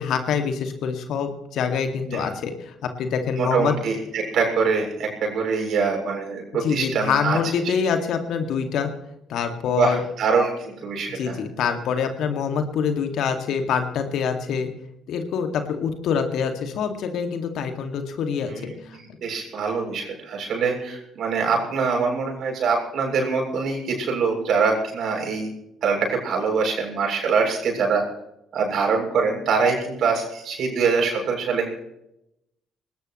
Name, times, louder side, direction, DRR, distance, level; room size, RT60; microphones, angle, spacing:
voice 1, 0.0-3.7 6.6-8.9 9.3-10.0 11.1-14.7 15.1-19.0, left 6 dB, 65° left, 6 dB, 2.2 m, -25 dB
voice 2, 3.4-7.4 7.6-7.7 9.8-11.4 18.5-25.5 25.8-28.0 28.5-31.8, right 5 dB, 60° right, 1 dB, 7.2 m, -24 dB
21.0 x 19.0 x 3.2 m, 0.82 s
hypercardioid pair, 50°, 0 cm